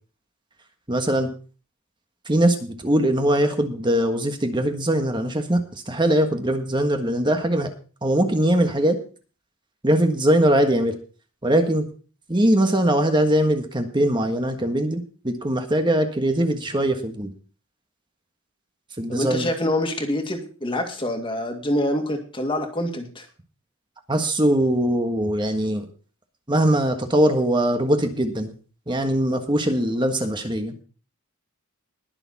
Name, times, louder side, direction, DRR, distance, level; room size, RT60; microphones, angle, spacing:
voice 1, 0.9-1.3 2.3-7.7 8.0-9.0 9.8-11.0 11.4-11.9 12.3-17.3 19.0-19.5 24.1-25.9 26.5-28.5 28.9-30.8, right 1 dB, 20° right, 6 dB, 1.5 m, -21 dB
voice 2, 19.1-23.3, left 1 dB, 25° left, 4 dB, 2.2 m, -26 dB
21.0 x 6.9 x 4.2 m, 0.38 s
head